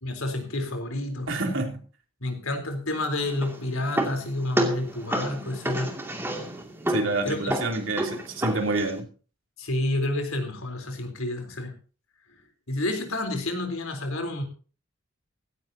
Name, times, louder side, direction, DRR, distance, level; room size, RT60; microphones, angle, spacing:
voice 1, 0.0-1.3 2.2-5.9 7.2-7.6 9.6-11.7 12.7-14.4, left 2 dB, 85° left, 5 dB, 3.9 m, -29 dB
voice 2, 1.3-1.8 6.9-9.1, right 2 dB, 70° right, 3 dB, 3.4 m, -27 dB
sound 1, 3.2-9.0, right 1 dB, 10° right, 2.4 m, -30 dB
17.0 x 15.5 x 2.9 m, 0.38 s
head